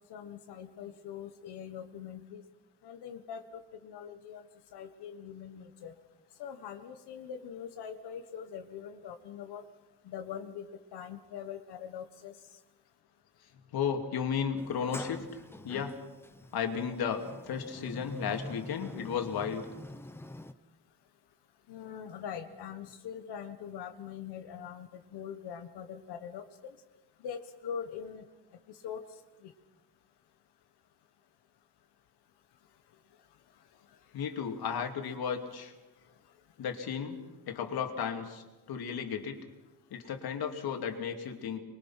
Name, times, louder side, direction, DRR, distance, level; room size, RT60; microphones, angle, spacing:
voice 1, 0.1-2.4 2.8-3.4 3.8-4.4 4.7-5.9 6.4-9.6 10.1-10.6 10.9-12.3 21.7-26.4 27.2-28.2 28.8-29.0, left 8 dB, 85° left, 6 dB, 1.5 m, -42 dB
voice 2, 13.7-15.3 15.6-16.0 16.5-19.7 34.1-35.7 36.6-37.2 37.5-39.5 39.9-41.6, left 7 dB, 70° left, 4 dB, 2.8 m, -34 dB
Sliding door, 14.6-20.5, left 1 dB, 5° left, 0.8 m, -45 dB
26.0 x 22.5 x 5.8 m, 1.1 s
cardioid pair, 145°, 39 cm